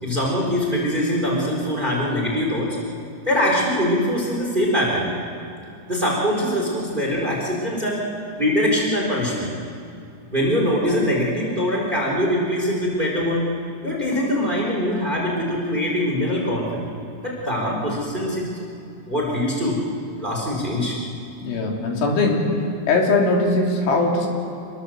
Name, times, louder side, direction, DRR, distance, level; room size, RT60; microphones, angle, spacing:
voice 1, 0.0-2.8 3.3-5.1 5.9-8.0 8.4-9.5 10.3-13.5 13.8-16.8 17.2-18.6 19.1-19.8 20.2-21.0, equal, 10° right, -2 dB, 3.8 m, -23 dB
voice 2, 21.4-22.6 22.9-24.3, left 2 dB, 75° left, 0 dB, 5.2 m, -20 dB
27.0 x 21.0 x 7.9 m, 2.6 s
omnidirectional pair, 5.6 m